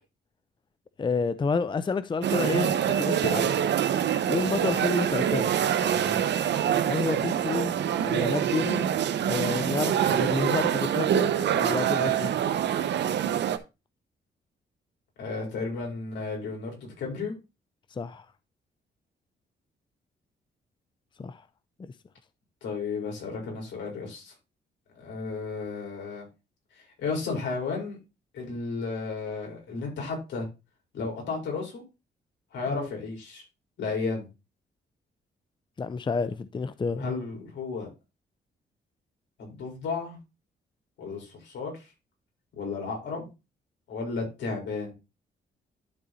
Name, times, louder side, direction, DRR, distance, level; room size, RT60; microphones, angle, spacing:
voice 1, 1.0-3.5 4.3-5.5 6.9-8.9 9.3-12.3 17.9-18.3 21.2-21.4 21.8-21.9 32.7-32.9 35.8-37.1, left 4 dB, 25° left, 0.5 m, -30 dB
sound 1, 2.2-13.6, right 9 dB, 75° right, 0.8 m, -25 dB
voice 2, 5.8-6.2 15.2-17.3 22.6-24.3 25.0-26.3 27.0-28.0 28.3-30.5 30.9-31.8 32.5-33.4 33.8-34.3 37.0-37.9 39.4-40.2 41.0-41.7 42.5-43.3 43.9-44.9, left 4 dB, 85° left, 4.7 m, -33 dB
12.0 x 4.1 x 4.0 m
cardioid pair, 95°, 18 cm